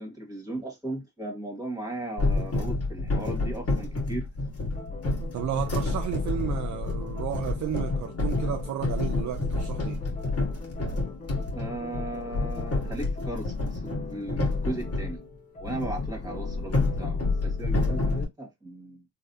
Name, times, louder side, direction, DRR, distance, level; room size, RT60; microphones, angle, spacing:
voice 1, 0.0-4.3 11.4-15.2 15.6-19.0, right 2 dB, 10° right, 1.8 m, -37 dB
sound 1, 2.2-15.2 15.6-18.3, left 3 dB, 40° left, 1.6 m, -29 dB
sound 2, 4.7-18.2, left 3 dB, 20° left, 0.8 m, -43 dB
voice 2, 5.3-10.0, right 11 dB, 50° right, 0.5 m, -33 dB
3.2 x 2.5 x 2.6 m
cardioid pair, 75°, 38 cm